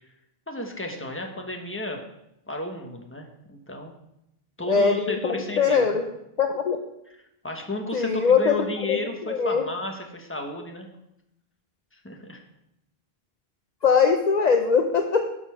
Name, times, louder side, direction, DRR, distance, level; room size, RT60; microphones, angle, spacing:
voice 1, 0.5-2.0 2.5-3.9 4.6-6.0 7.4-10.9 12.0-12.4, left 2 dB, 10° left, 2 dB, 1.2 m, -33 dB
voice 2, 4.7-6.1 6.4-6.8 7.9-9.0 9.3-9.6 13.8-15.2, left 5 dB, 45° left, 4 dB, 0.7 m, -21 dB
12.5 x 4.3 x 5.7 m, 0.85 s
omnidirectional pair, 1.0 m